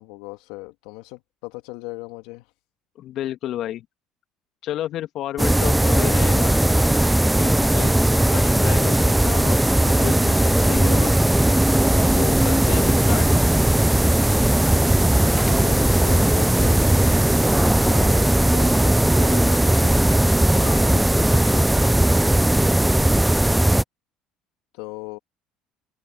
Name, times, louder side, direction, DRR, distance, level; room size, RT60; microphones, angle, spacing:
voice 1, 0.0-2.5 15.1-16.8 17.8-20.0 24.7-25.2, left 24 dB, 75° left, 2.0 m, -37 dB
voice 2, 3.0-3.8 4.6-6.6 7.4-7.9 8.3-11.2 12.1-13.3 17.3-17.7 20.5-21.7, left 12 dB, 60° left, 2.5 m, -32 dB
sound 1, 5.4-23.8, right 1 dB, 5° right, 0.5 m, -18 dB
open air
hypercardioid pair, 70°, 0 cm